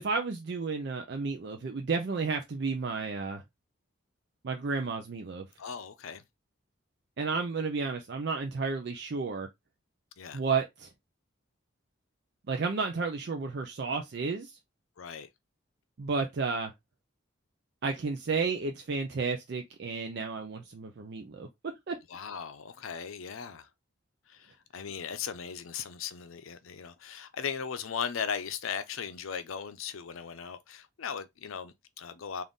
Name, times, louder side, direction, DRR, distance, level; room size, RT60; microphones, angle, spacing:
voice 1, 0.0-3.4 4.4-5.5 7.2-9.5 10.3-10.9 12.5-14.6 16.0-16.7 17.8-21.5 21.9-22.0, right 4 dB, 55° right, 0.4 m, -32 dB
voice 2, 5.6-6.2 10.2-10.4 15.0-15.3 22.1-23.7 24.3-32.4, left 7 dB, 80° left, 0.6 m, -38 dB
3.9 x 2.5 x 3.5 m
head